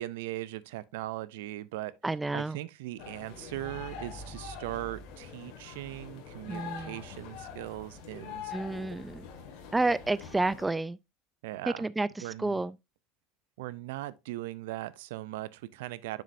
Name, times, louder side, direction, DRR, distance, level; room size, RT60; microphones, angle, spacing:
voice 1, 0.0-1.9 2.3-8.9 11.4-11.9 12.2-12.6 13.6-16.2, right 16 dB, 85° right, 0.5 m, -39 dB
voice 2, 2.0-2.6 6.5-7.0 8.5-9.2 9.7-11.0 11.8-12.1 12.4-12.7, right 2 dB, 10° right, 0.3 m, -30 dB
sound 1, 3.0-10.7, left 5 dB, 70° left, 2.0 m, -44 dB
6.9 x 6.3 x 2.6 m
supercardioid pair, 120°, 0 cm